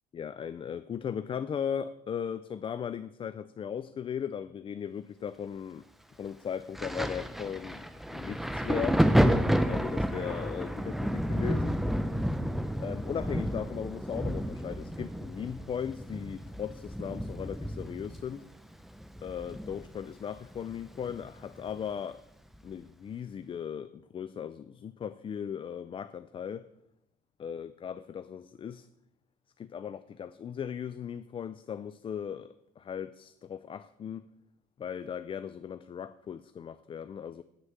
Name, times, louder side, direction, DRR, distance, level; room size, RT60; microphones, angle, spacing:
voice 1, 0.1-5.8 6.2-9.0 9.6-11.8 12.8-18.5 19.2-22.2 22.6-26.7 27.4-28.9 29.6-34.3 34.8-37.4, left 8 dB, 30° left, 14 dB, 0.4 m, -37 dB
Thunder, 6.7-20.1 20.4-21.7 22.5-22.7, equal, ahead, 0.8 m, -30 dB
9.1 x 6.6 x 7.3 m, 0.84 s
cardioid pair, 110°, 17 cm